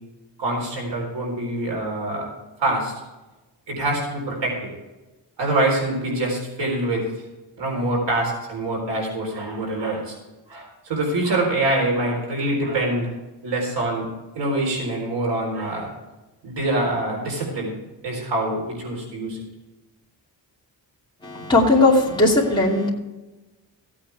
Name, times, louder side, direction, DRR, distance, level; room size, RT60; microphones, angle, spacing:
voice 1, 0.4-2.3 2.6-2.9 3.7-4.7 5.4-7.0 7.6-10.2 10.5-13.1 13.4-14.1 14.4-15.9 16.4-17.7 18.0-19.4, right 2 dB, 85° right, -1 dB, 4.1 m, -25 dB
voice 2, 21.2-22.9, left 2 dB, 10° left, -5 dB, 2.5 m, -18 dB
16.0 x 8.7 x 3.5 m, 1.1 s
wide cardioid pair, 165°, 41 cm